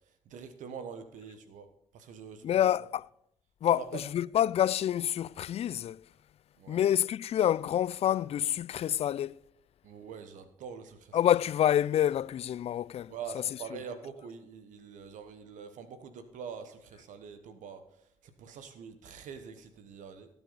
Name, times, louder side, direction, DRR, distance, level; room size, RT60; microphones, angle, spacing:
voice 1, 0.0-1.7 1.9-2.5 3.7-4.0 6.6-6.8 9.8-11.2 13.1-20.3, right 6 dB, 70° right, 1.1 m, -44 dB
voice 2, 2.4-3.1 3.6-6.0 6.7-9.4 11.1-13.1, left 11 dB, 50° left, 0.4 m, -27 dB
16.5 x 7.0 x 4.0 m
hypercardioid pair, 50°, 14 cm